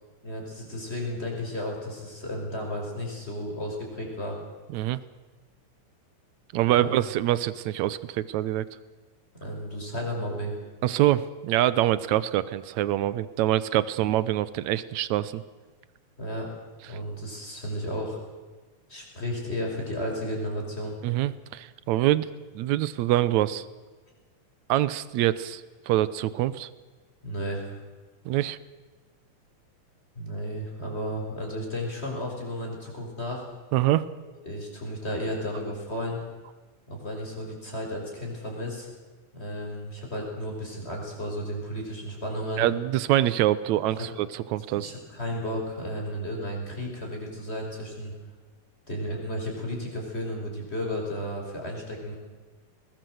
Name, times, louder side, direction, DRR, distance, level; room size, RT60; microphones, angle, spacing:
voice 1, 0.2-4.4 6.7-6.9 9.4-10.6 16.2-16.5 16.9-18.2 18.9-21.0 27.2-27.7 30.2-33.5 34.4-36.2 36.9-38.9 39.3-42.6 44.0-44.1 44.7-48.1 48.9-52.1, equal, 20° left, 0 dB, 5.5 m, -33 dB
voice 2, 6.5-8.7 10.8-15.4 21.0-22.3 22.6-23.7 24.7-25.6 25.9-26.7 28.3-28.6 33.7-34.1 42.6-44.9, right 14 dB, 70° right, 17 dB, 1.9 m, -25 dB
21.5 x 19.0 x 7.9 m, 1.3 s
omnidirectional pair, 3.7 m